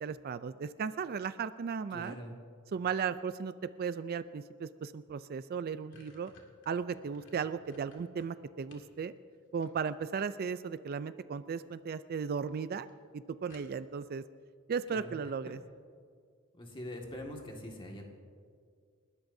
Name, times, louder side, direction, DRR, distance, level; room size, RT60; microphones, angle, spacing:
voice 1, 0.0-2.2 2.7-3.5 3.8-6.3 6.7-9.1 9.5-12.9 13.1-14.2 14.7-15.6, right 6 dB, 45° right, 13 dB, 0.4 m, -36 dB
voice 2, 1.9-2.3 14.9-15.2 15.5-15.6 16.5-18.0, left 1 dB, 25° left, 0 dB, 1.8 m, -43 dB
sound 1, 5.1-5.2 5.5-8.9 9.3-10.2 11.3-11.7 12.1-12.2 12.5-12.6 12.9-13.0 13.5-14.1, left 2 dB, 65° left, 2.3 m, -60 dB
29.5 x 12.5 x 2.7 m, 2.1 s
head